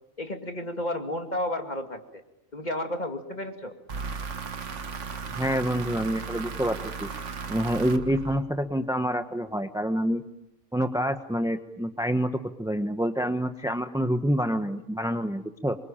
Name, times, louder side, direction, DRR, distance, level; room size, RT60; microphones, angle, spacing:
voice 1, 0.2-2.2 2.5-3.7, left 1 dB, 30° left, 4 dB, 2.6 m, -32 dB
sound 1, 3.9-8.8, right 5 dB, 65° right, 1.7 m, -36 dB
voice 2, 5.4-7.1 7.5-10.2 10.7-12.3 12.6-15.8, equal, 5° right, 7 dB, 1.0 m, -27 dB
26.0 x 24.0 x 8.9 m, 0.89 s
omnidirectional pair, 1.4 m